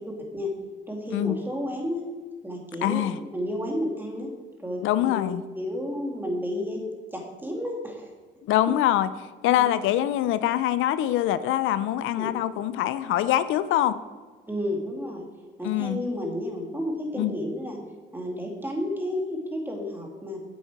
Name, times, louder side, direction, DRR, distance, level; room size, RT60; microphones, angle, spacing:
voice 1, 0.9-2.0 2.4-3.0 3.3-4.3 4.6-5.3 5.6-6.8 7.1-8.1 8.7-8.8 9.5-9.7 12.2-12.3 14.5-15.2 15.6-17.8 18.1-20.4, left 1 dB, 10° right, 0 dB, 2.2 m, -31 dB
voice 2, 2.8-3.2 4.8-5.4 8.4-9.1 9.4-14.0 15.6-16.0 17.2-17.3, left 12 dB, 90° left, 14 dB, 0.4 m, -24 dB
8.7 x 7.2 x 4.7 m, 1.4 s
cardioid pair, 90°, 20 cm